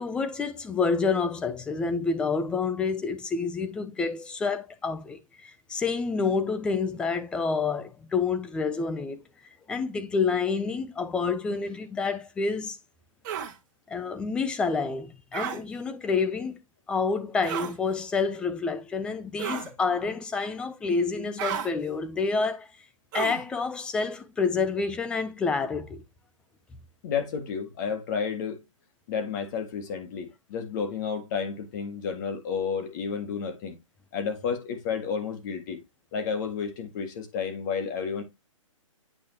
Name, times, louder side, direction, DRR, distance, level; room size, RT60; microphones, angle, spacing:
voice 1, 0.0-9.2 9.7-12.8 13.9-16.6 16.9-22.7 23.1-26.0, left 4 dB, 5° left, 0.4 m, -28 dB
sound 1, 13.2-13.5 15.3-15.6 17.4-17.8 19.4-19.7 21.4-21.7 23.1-23.4, right 9 dB, 35° right, 1.3 m, -32 dB
voice 2, 27.0-28.6 29.1-33.8 34.1-35.8 36.1-38.2, left 6 dB, 35° left, 1.8 m, -31 dB
8.7 x 5.1 x 2.8 m
hypercardioid pair, 155°, 17 cm